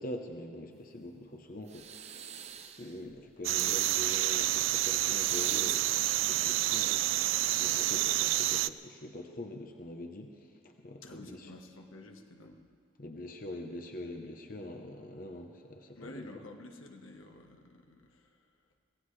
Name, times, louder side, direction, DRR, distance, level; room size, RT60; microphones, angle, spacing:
voice 1, 0.0-2.0 2.6-11.5 13.0-16.3, left 1 dB, 45° left, 3 dB, 0.9 m, -44 dB
sound 1, 1.6-3.0 5.1-5.9, right 7 dB, 35° right, 0.6 m, -45 dB
sound 2, 3.4-8.7, right 15 dB, 75° right, 0.3 m, -29 dB
voice 2, 11.0-12.6 15.9-18.5, left 1 dB, 90° left, 3 dB, 1.4 m, -50 dB
25.5 x 17.0 x 3.3 m, 2.3 s
head